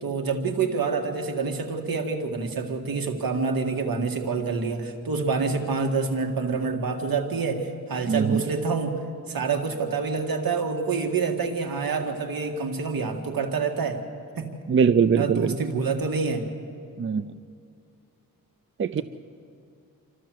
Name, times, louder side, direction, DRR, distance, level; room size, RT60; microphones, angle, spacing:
voice 1, 0.0-9.0 9.3-14.0 14.4-14.5 15.2-16.4, right 4 dB, 75° right, 4 dB, 2.0 m, -27 dB
voice 2, 8.1-8.4 14.7-15.5 17.0-17.4 18.8-19.0, right 6 dB, 35° right, 13 dB, 0.5 m, -22 dB
27.5 x 12.5 x 7.7 m, 2.5 s
wide cardioid pair, 95°, 35 cm